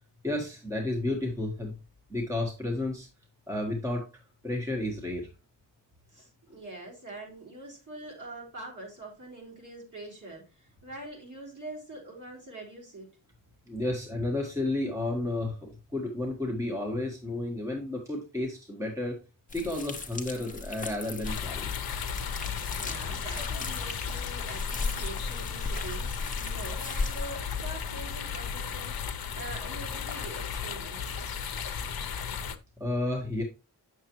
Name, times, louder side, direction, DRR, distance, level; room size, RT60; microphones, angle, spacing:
voice 1, 0.2-1.7 2.1-3.1 3.5-4.1 4.4-5.3 13.7-19.2 19.5-21.7 32.8-33.4, left 2 dB, 5° right, 1 dB, 1.4 m, -32 dB
voice 2, 6.1-13.2 22.7-31.2 32.2-32.4, right 2 dB, 45° right, -2 dB, 3.7 m, -44 dB
sound 1, 19.5-27.3, left 3 dB, 20° left, 1.0 m, -37 dB
sound 2, 21.2-32.6, left 7 dB, 55° left, 0.8 m, -35 dB
8.1 x 6.7 x 3.0 m, 0.29 s
wide cardioid pair, 120°, 43 cm